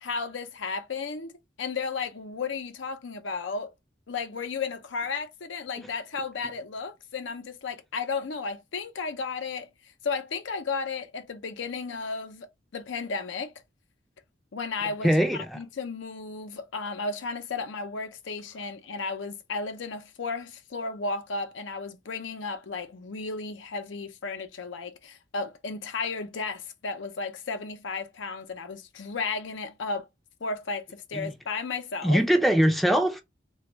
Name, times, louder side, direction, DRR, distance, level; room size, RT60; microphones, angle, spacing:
voice 1, 0.0-1.3 1.6-3.7 4.1-9.7 10.0-12.5 12.7-13.5 14.5-30.1 30.4-32.2, left 4 dB, 85° left, 0.6 m, -34 dB
voice 2, 15.0-15.6 31.1-31.3 32.0-33.2, equal, ahead, 0.5 m, -22 dB
3.3 x 2.3 x 3.0 m
head